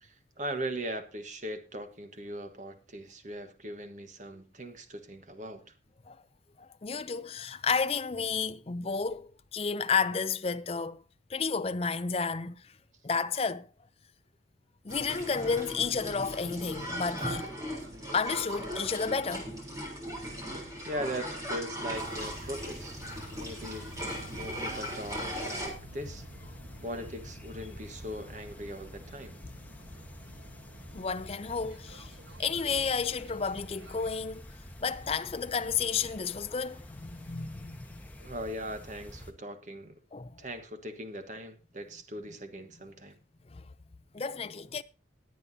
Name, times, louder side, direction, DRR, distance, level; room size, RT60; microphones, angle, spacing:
voice 1, 0.0-5.7 20.4-20.6 20.8-23.0 23.3-26.2 26.8-29.4 38.2-39.9 40.4-43.1, equal, 40° right, 1.3 m, -40 dB
voice 2, 6.6-11.0 11.3-12.8 13.0-13.7 14.8-17.5 18.1-19.5 30.9-32.1 32.4-34.4 34.8-38.0 40.1-40.4 43.5-43.7 44.1-44.8, left 5 dB, 30° left, 0.5 m, -31 dB
sound 1, 14.9-25.7, equal, 15° right, 3.5 m, -38 dB
sound 2, 14.9-34.1, right 1 dB, 70° right, 1.4 m, -52 dB
sound 3, 21.9-39.3, left 1 dB, 10° left, 1.2 m, -48 dB
20.5 x 8.3 x 2.7 m
head